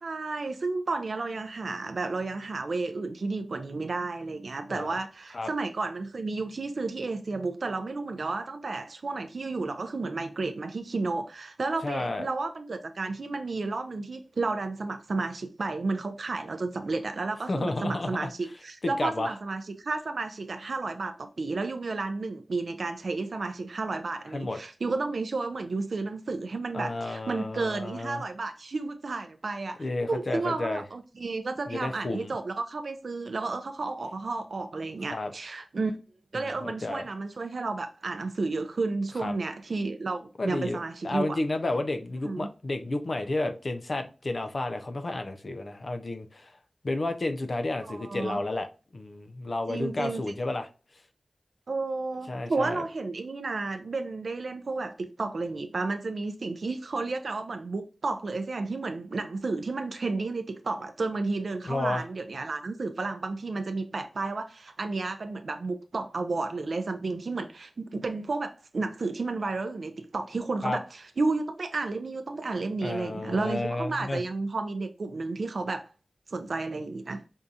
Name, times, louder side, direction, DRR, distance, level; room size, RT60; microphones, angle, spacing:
voice 1, 0.0-36.0 36.3-41.4 42.2-42.5 47.8-48.4 49.7-50.2 51.7-75.9 76.3-77.2, right 3 dB, 65° right, 0.4 m, -32 dB
voice 2, 11.8-12.3 17.5-18.3 18.8-19.3 24.3-24.6 26.7-28.2 29.8-30.8 31.7-32.3 35.1-35.3 36.3-37.1 39.2-39.3 40.4-46.5 46.8-48.7 48.9-50.7 52.3-52.8 61.7-62.1 70.6-70.8 72.8-74.2, left 2 dB, 50° left, 0.4 m, -31 dB
5.2 x 2.4 x 2.6 m
wide cardioid pair, 85°, 0 cm